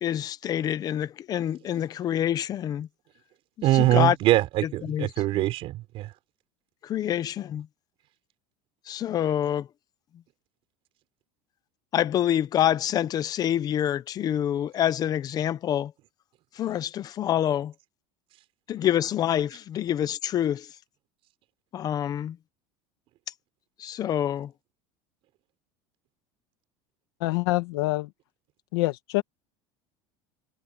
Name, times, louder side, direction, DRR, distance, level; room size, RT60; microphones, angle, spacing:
voice 1, 0.0-2.9 3.7-4.2 4.8-5.1 5.3-5.4 6.8-7.7 8.9-9.7 11.9-15.9 16.6-17.7 18.7-20.7 21.7-22.4 23.8-24.5, left 11 dB, 30° left, 0.9 m, -26 dB
voice 2, 3.6-6.1, right 16 dB, 45° right, 5.9 m, -23 dB
voice 3, 27.2-28.1 28.7-29.2, left 21 dB, 80° left, 1.5 m, -25 dB
cardioid pair, 160°, 13 cm